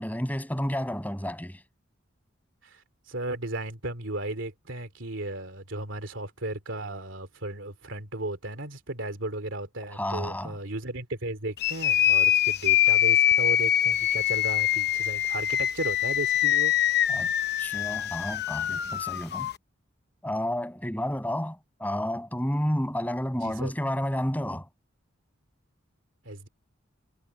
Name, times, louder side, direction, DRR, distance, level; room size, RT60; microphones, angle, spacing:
voice 1, 0.0-1.6 9.9-10.6 17.1-17.3 17.6-19.5 20.2-24.7, equal, 10° left, 7.0 m, -31 dB
voice 2, 2.6-16.7 23.4-23.7 26.2-26.5, right 2 dB, 65° right, 3.2 m, -35 dB
sound 1, 11.6-19.5, left 11 dB, 55° left, 0.8 m, -24 dB
head